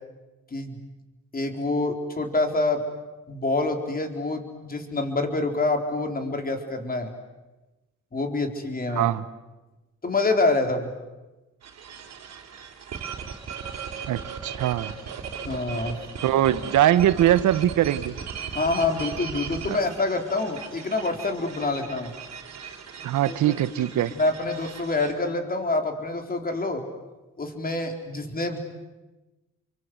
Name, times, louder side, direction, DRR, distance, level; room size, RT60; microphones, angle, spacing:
voice 1, 1.3-2.8 3.3-7.1 8.1-9.1 10.0-10.9 15.5-16.0 18.5-22.1 23.3-23.6 24.2-26.8 27.4-28.6, left 2 dB, 30° left, 5 dB, 4.3 m, -26 dB
voice 2, 8.9-9.2 14.1-14.9 16.2-18.1 19.7-19.8 23.0-24.1, right 12 dB, 75° right, 14 dB, 1.3 m, -22 dB
sound 1, 11.6-25.1, right 6 dB, 60° right, 3.9 m, -38 dB
29.5 x 24.0 x 8.1 m, 1.1 s
cardioid pair, 90°, 30 cm